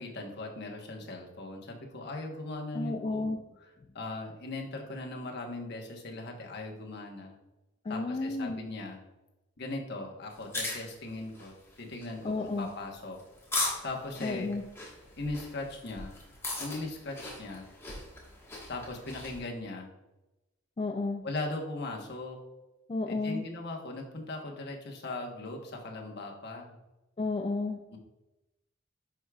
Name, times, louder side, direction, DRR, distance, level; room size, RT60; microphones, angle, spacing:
voice 1, 0.0-3.3 3.6-7.4 7.9-9.0 9.6-11.5 11.8-13.2 13.8-14.5 15.2-16.2 16.6-17.7 18.7-19.9 21.2-22.4 23.1-26.8 27.9-28.0, left 2 dB, 55° left, 1 dB, 1.1 m, -39 dB
voice 2, 2.7-3.4 7.9-8.6 12.2-12.7 14.2-14.6 20.8-21.2 22.9-23.5 27.2-27.8, left 3 dB, 30° left, 4 dB, 0.3 m, -32 dB
sound 1, 10.3-19.4, left 2 dB, 15° left, 1.4 m, -39 dB
10.5 x 4.8 x 2.3 m, 1.0 s
head